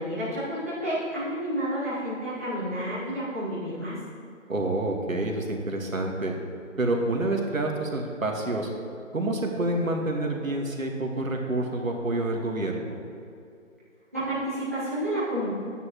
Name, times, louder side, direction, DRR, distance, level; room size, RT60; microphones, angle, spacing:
voice 1, 0.0-4.0 14.1-15.5, equal, 10° right, -13 dB, 1.0 m, -30 dB
voice 2, 4.5-6.3 6.8-8.7 9.1-12.9, right 2 dB, 80° right, 1 dB, 1.8 m, -28 dB
12.0 x 9.4 x 3.1 m, 2.5 s
figure-of-eight pair, 170°, 40 cm